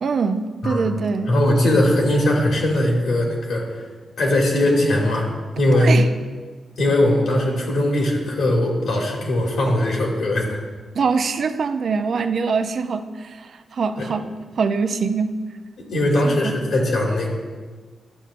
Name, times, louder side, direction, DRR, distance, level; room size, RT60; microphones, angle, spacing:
voice 1, 0.0-1.3 5.7-6.1 10.9-14.3 14.6-15.4 16.2-16.6, right 5 dB, 65° right, 9 dB, 0.4 m, -23 dB
voice 2, 1.3-3.8 4.2-5.3 5.6-6.0 6.8-10.6 14.0-14.1 15.9-17.3, left 1 dB, 80° left, -1 dB, 1.8 m, -20 dB
10.5 x 6.6 x 2.5 m, 1.4 s
cardioid pair, 90°, 0 cm